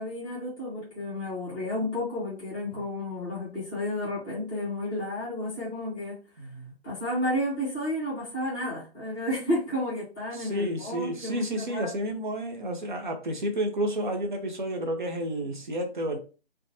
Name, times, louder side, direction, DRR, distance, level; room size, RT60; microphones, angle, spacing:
voice 1, 0.0-6.5 6.8-11.9, left 1 dB, 10° left, 0.6 m, -32 dB
voice 2, 6.4-6.7 10.3-16.2, right 1 dB, 50° right, 0.5 m, -31 dB
2.7 x 2.1 x 2.7 m
figure-of-eight pair, 140°, 32 cm